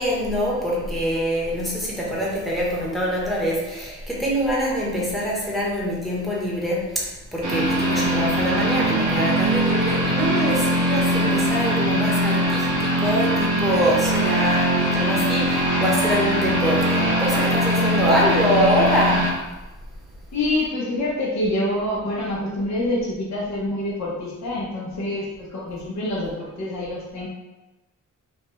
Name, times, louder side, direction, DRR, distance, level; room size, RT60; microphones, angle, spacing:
voice 1, 0.0-19.4, equal, ahead, -6 dB, 1.0 m, -24 dB
sound 1, 7.4-19.3, equal, 70° right, 0.8 m, -21 dB
voice 2, 20.3-27.3, left 1 dB, 60° left, -5 dB, 0.8 m, -26 dB
3.4 x 2.2 x 3.0 m, 1.1 s
wide cardioid pair, 95°, 32 cm